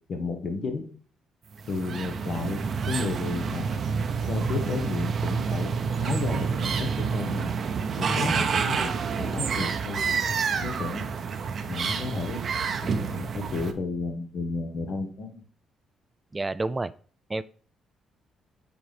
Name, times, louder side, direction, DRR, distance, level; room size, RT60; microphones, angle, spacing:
voice 1, 0.1-0.8 1.7-2.6 2.9-3.7 4.3-5.7 6.0-7.5 8.0-8.9 9.2-10.1 10.5-11.1 11.7-12.4 12.8-15.4, left 3 dB, 55° left, 4 dB, 1.4 m, -32 dB
sound 1, 1.6-13.7, right 6 dB, 55° right, 0.7 m, -28 dB
voice 2, 16.3-16.9 17.3-17.4, right 2 dB, 20° right, 16 dB, 0.3 m, -28 dB
7.6 x 4.1 x 3.4 m, 0.42 s
cardioid pair, 90°, 0 cm